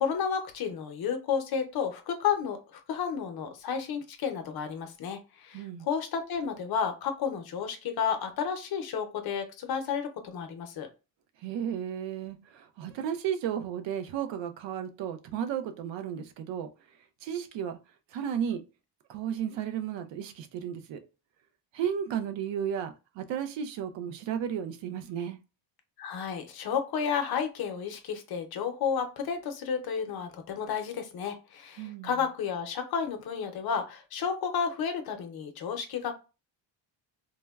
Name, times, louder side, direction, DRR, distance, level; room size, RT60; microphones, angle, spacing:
voice 1, 0.0-10.9 26.0-36.1, left 7 dB, 55° left, 0.6 m, -32 dB
voice 2, 5.5-5.9 11.4-16.7 17.2-17.8 18.1-18.6 19.1-21.0 21.7-25.4 31.8-32.1, right 9 dB, 75° right, 0.6 m, -33 dB
3.3 x 2.1 x 2.2 m
cardioid pair, 140°, 44 cm